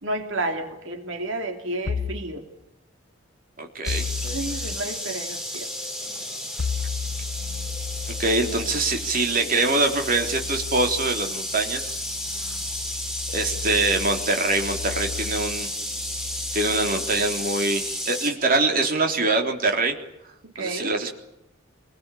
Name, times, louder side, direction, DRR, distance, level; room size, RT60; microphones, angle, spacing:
voice 1, 0.0-2.5 4.2-5.7 20.4-21.0, right 2 dB, 80° right, 4 dB, 2.9 m, -31 dB
sound 1, 1.9-2.3 3.9-4.8 6.6-17.9, left 6 dB, 85° left, 0.9 m, -35 dB
voice 2, 3.6-4.1 8.2-12.0 13.3-15.7 16.5-20.0 20.6-21.1, right 2 dB, 45° right, 3 dB, 3.7 m, -24 dB
sound 2, 3.8-18.3, equal, ahead, 4.5 m, -32 dB
26.5 x 20.5 x 8.6 m, 0.87 s
head